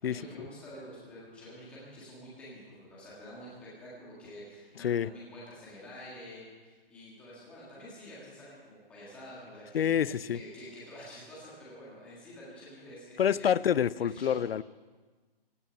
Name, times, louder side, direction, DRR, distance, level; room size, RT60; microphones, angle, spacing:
voice 1, 0.0-13.5 14.0-14.4, equal, 5° left, -7 dB, 1.7 m, -48 dB
voice 2, 4.8-5.1 9.7-10.4 13.2-14.6, left 9 dB, 75° left, 20 dB, 0.5 m, -27 dB
16.5 x 8.5 x 9.3 m, 1.4 s
hypercardioid pair, 180°, 30 cm